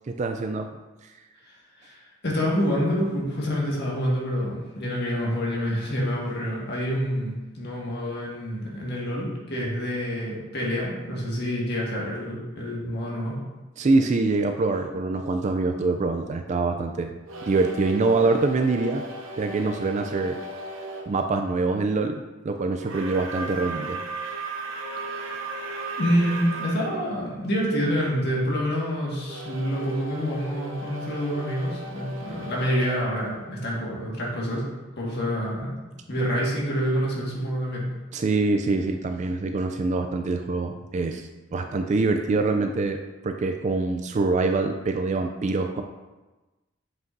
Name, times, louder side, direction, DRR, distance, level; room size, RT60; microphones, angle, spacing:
voice 1, 0.1-0.7 13.8-17.1 17.5-19.0 19.4-20.4 21.1-24.0 38.1-45.8, right 3 dB, 40° right, 5 dB, 0.3 m, -25 dB
voice 2, 1.8-13.4 25.1-25.5 26.0-34.6 35.0-35.7 36.1-37.9, equal, 60° left, -4 dB, 1.7 m, -27 dB
sound 1, 17.2-21.1 22.8-26.9 29.3-34.1, right 2 dB, 90° right, 0.8 m, -36 dB
7.7 x 5.5 x 2.6 m, 1.1 s
head